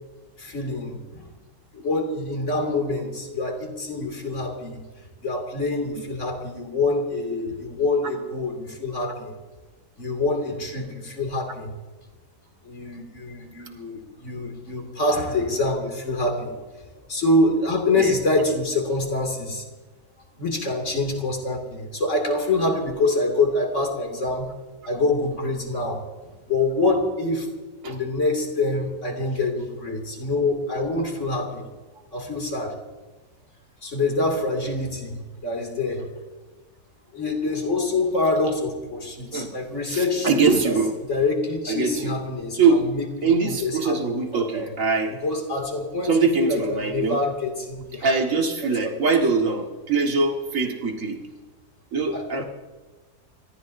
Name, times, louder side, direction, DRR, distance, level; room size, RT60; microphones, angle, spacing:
voice 1, 0.4-1.2 1.7-4.8 5.2-9.3 10.0-11.7 12.6-16.5 17.1-19.6 20.4-24.5 24.8-27.5 27.8-31.6 32.1-32.8 33.8-36.1 37.1-40.7 41.1-44.7 45.2-49.0 52.1-52.4, left 2 dB, 50° left, 2 dB, 2.8 m, -26 dB
voice 2, 39.9-40.9 41.7-42.1 42.5-42.8 43.2-45.1 46.0-47.2 48.0-51.2 51.9-52.4, right 4 dB, 55° right, 2 dB, 2.1 m, -22 dB
29.0 x 14.5 x 2.7 m, 1.3 s
omnidirectional pair, 1.7 m